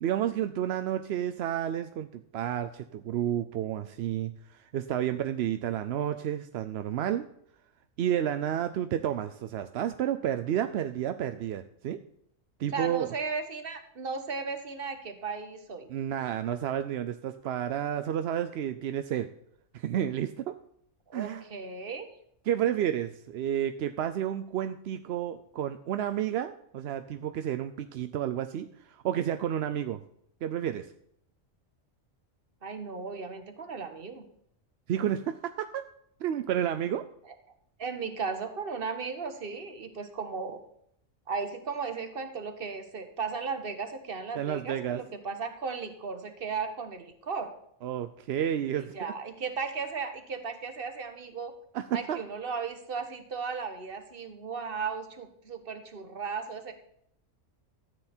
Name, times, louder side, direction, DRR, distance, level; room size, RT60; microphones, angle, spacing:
voice 1, 0.0-7.2 8.0-12.0 12.6-13.1 15.9-19.3 19.7-20.5 21.1-21.4 22.4-30.0 30.4-30.9 34.9-35.8 36.2-37.0 44.3-45.0 47.8-48.9 51.7-52.2, right 10 dB, 65° right, 9 dB, 0.7 m, -31 dB
voice 2, 12.7-15.9 21.1-22.1 32.6-34.2 37.8-40.6 41.3-47.5 48.7-51.5 51.9-56.7, right 5 dB, 45° right, 7 dB, 1.4 m, -36 dB
13.0 x 8.2 x 4.3 m, 0.70 s
omnidirectional pair, 1.4 m